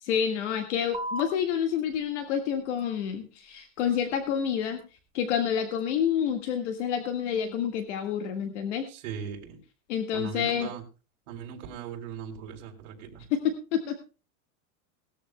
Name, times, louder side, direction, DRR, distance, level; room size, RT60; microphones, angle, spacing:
voice 1, 0.0-4.8 5.1-8.8 9.9-10.7 13.3-14.0, left 8 dB, 55° left, 6 dB, 1.8 m, -28 dB
sound 1, 0.9-7.9, right 1 dB, 10° right, 1.3 m, -45 dB
voice 2, 8.9-9.6 10.1-10.8 11.3-13.2, right 7 dB, 55° right, 1 dB, 3.8 m, -39 dB
19.5 x 13.5 x 2.2 m, 0.33 s
supercardioid pair, 175°, 43 cm